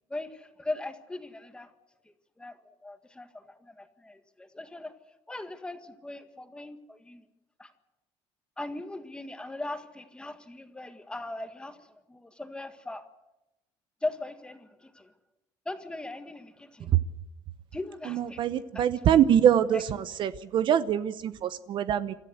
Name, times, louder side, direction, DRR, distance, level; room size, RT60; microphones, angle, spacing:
voice 1, 0.0-1.7 2.1-4.9 5.3-7.2 7.6-7.7 8.6-13.0 14.0-15.1 15.7-16.9 17.7-19.2 19.7-19.8, left 2 dB, 10° left, 8 dB, 1.7 m, -39 dB
voice 2, 18.1-19.8 20.2-22.1, right 9 dB, 50° right, 14 dB, 0.8 m, -24 dB
27.0 x 13.5 x 8.1 m, 0.95 s
cardioid pair, 125°, 11 cm